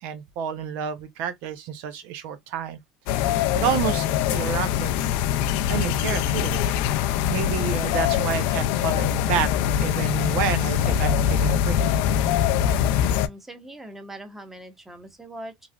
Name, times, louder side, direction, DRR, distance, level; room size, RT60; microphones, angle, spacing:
voice 1, 0.0-2.8 3.5-5.1 5.7-6.6 7.3-9.5 9.8-11.8, right 8 dB, 65° right, 0.5 m, -29 dB
sound 1, 3.1-13.3, left 10 dB, 70° left, 0.3 m, -23 dB
voice 2, 13.1-15.7, right 1 dB, 10° right, 0.9 m, -41 dB
3.1 x 2.4 x 2.2 m
supercardioid pair, 105°, 3 cm